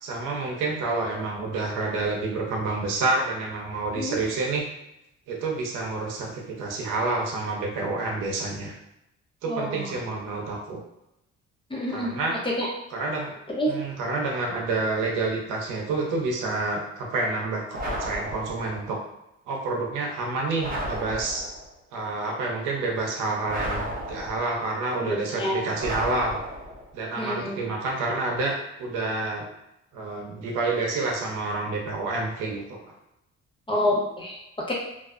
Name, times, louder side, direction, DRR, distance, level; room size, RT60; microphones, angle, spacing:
voice 1, 0.0-4.6 5.3-8.7 9.4-10.8 11.9-12.4 12.9-13.3 13.7-19.0 19.5-21.4 21.9-26.4 26.9-29.5 29.9-32.9, right 3 dB, 90° right, -1 dB, 0.7 m, -28 dB
voice 2, 9.5-9.9 11.7-12.1 12.4-12.7 13.5-13.8 25.1-25.6 27.2-27.6 33.7-34.4 34.7-34.8, left 1 dB, 15° left, -3 dB, 0.6 m, -27 dB
sound 1, 17.7-18.8 20.6-21.7 23.5-24.6 25.8-26.9, equal, 30° right, 0.7 m, -33 dB
2.4 x 2.1 x 2.4 m, 0.88 s
cardioid pair, 90°, 30 cm